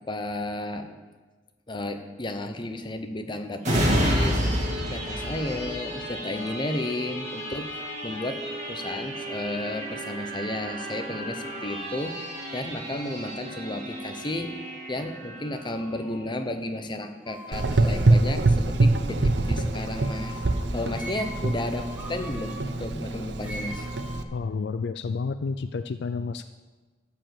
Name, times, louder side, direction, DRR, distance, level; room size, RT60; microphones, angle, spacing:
voice 1, 0.1-1.0 1.7-14.5 14.9-20.4 20.7-23.9, left 1 dB, 25° left, 7 dB, 0.9 m, -33 dB
sound 1, 3.6-16.9 17.4-17.5, equal, 40° right, 2.3 m, -31 dB
sound 2, 17.2-20.5 20.9-22.6 23.4-24.2, equal, 10° right, 2.0 m, -42 dB
Gurgling / Engine, 17.5-24.2, right 2 dB, 70° right, 0.7 m, -25 dB
voice 2, 24.3-26.4, left 4 dB, 65° left, 11 dB, 0.4 m, -30 dB
13.0 x 5.2 x 7.7 m, 1.3 s
head